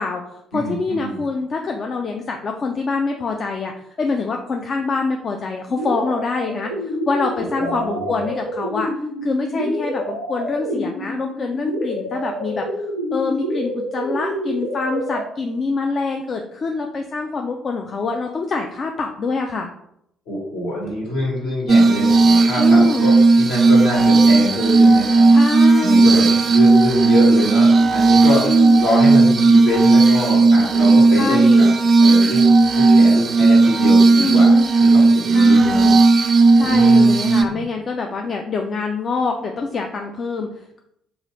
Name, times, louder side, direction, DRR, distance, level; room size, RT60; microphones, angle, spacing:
voice 1, 0.0-3.7 4.0-8.9 9.2-12.7 13.1-19.7 22.6-23.1 25.3-26.2 27.8-27.9 28.4-28.8 31.1-31.8 34.2-34.7 35.3-36.0 36.5-40.8, left 4 dB, 40° left, 3 dB, 0.3 m, -25 dB
voice 2, 0.5-1.2 7.4-8.2 20.3-25.3 25.7-28.5 28.8-31.7 32.0-32.4 32.7-35.9 36.2-37.6, left 1 dB, 65° left, -4 dB, 1.3 m, -25 dB
sound 1, 5.7-15.2, equal, 90° left, 0.8 m, -27 dB
Glass, 21.7-37.4, right 3 dB, 40° right, 0.4 m, -13 dB
3.7 x 2.4 x 3.0 m, 0.75 s
figure-of-eight pair, 45°, 0 cm